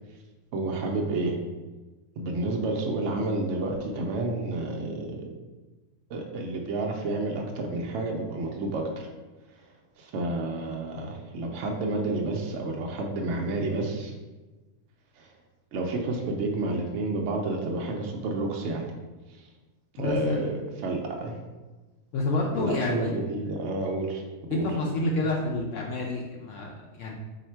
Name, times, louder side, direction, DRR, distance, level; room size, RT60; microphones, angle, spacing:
voice 1, 0.5-1.4 2.2-5.3 6.1-8.9 9.5-14.1 15.2-15.3 15.7-18.9 19.3-19.5 19.9-20.5 20.8-21.4 22.5-24.2 24.5-24.8, right 2 dB, 65° right, 1 dB, 0.7 m, -30 dB
voice 2, 20.0-20.4 22.1-23.1 24.5-27.1, left 2 dB, 65° left, -1 dB, 0.8 m, -28 dB
4.2 x 2.8 x 4.4 m, 1.2 s
omnidirectional pair, 1.7 m